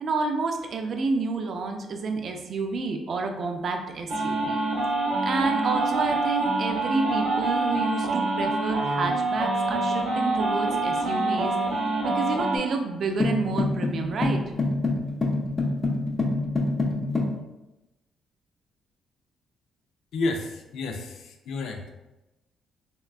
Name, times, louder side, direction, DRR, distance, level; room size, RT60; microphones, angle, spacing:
voice 1, 0.0-4.6 5.2-11.5 12.0-14.4, right 3 dB, 55° right, 4 dB, 0.4 m, -29 dB
sound 1, 4.1-12.6, right 2 dB, 85° right, 0.8 m, -26 dB
sound 2, 13.2-17.4, left 2 dB, 30° left, 0.6 m, -26 dB
voice 2, 20.1-21.9, left 3 dB, 80° left, 4 dB, 0.4 m, -31 dB
3.5 x 2.3 x 2.3 m, 0.98 s
cardioid pair, 90°, 0 cm